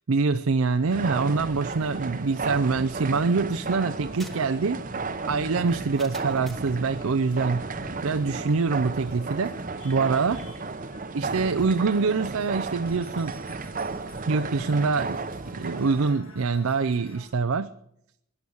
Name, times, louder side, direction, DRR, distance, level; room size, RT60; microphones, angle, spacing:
voice 1, 0.1-4.8 5.3-7.7 8.0-9.6 9.8-10.4 11.1-13.3 14.3-15.2 15.6-17.7, right 4 dB, 75° right, 10 dB, 0.6 m, -25 dB
sound 1, 0.7-17.2, left 1 dB, 80° left, 7.0 m, -48 dB
sound 2, 0.8-16.1, right 4 dB, 40° right, 0.8 m, -34 dB
sound 3, 3.9-6.8, right 1 dB, ahead, 1.3 m, -48 dB
18.5 x 11.0 x 7.2 m, 0.79 s
head